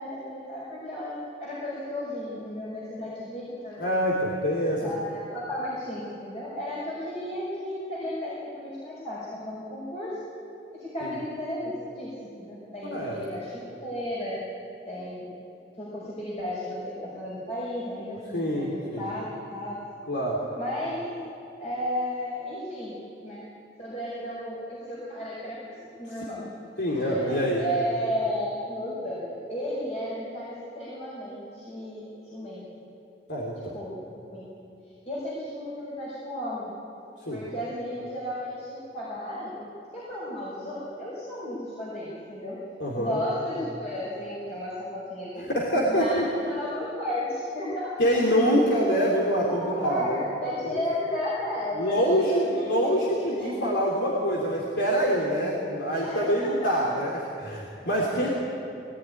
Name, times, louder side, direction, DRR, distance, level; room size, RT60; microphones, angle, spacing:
voice 1, 0.0-3.9 4.8-10.2 10.8-14.4 14.9-15.2 15.8-19.8 20.5-21.2 21.6-23.4 23.8-26.5 26.9-32.6 33.7-34.0 34.3-34.4 35.0-36.7 37.3-39.5 39.9-42.6 43.0-45.5 45.9-48.0 49.5-52.7 53.1-53.5 56.0-56.7 57.9-58.3, left 1 dB, 35° left, -7 dB, 5.9 m, -34 dB
voice 2, 3.8-4.9 11.0-11.2 12.8-13.2 18.3-19.1 20.1-20.4 26.8-27.6 33.3-33.8 37.2-37.4 42.8-43.2 45.4-46.3 48.0-50.2 50.6-50.7 51.7-58.3, equal, 75° left, -3 dB, 3.5 m, -25 dB
22.0 x 19.0 x 9.9 m, 2.8 s
head